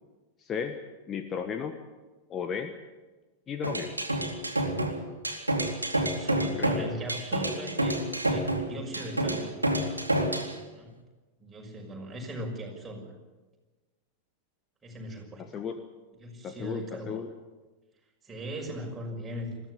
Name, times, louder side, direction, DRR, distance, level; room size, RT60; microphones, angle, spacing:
voice 1, 0.4-0.8 1.1-1.8 2.3-2.7 3.5-4.0 6.4-6.9 15.4-15.7 16.4-17.3, left 7 dB, 25° left, 7 dB, 1.5 m, -34 dB
sound 1, 3.6-10.5, right 1 dB, 85° right, 2.7 m, -28 dB
voice 2, 5.9-9.6 10.7-11.0 11.4-13.2 14.8-15.4 16.2-17.2 18.2-19.6, right 1 dB, 15° right, 0 dB, 6.2 m, -39 dB
21.5 x 15.5 x 9.6 m, 1.2 s
figure-of-eight pair, 90°, 0 cm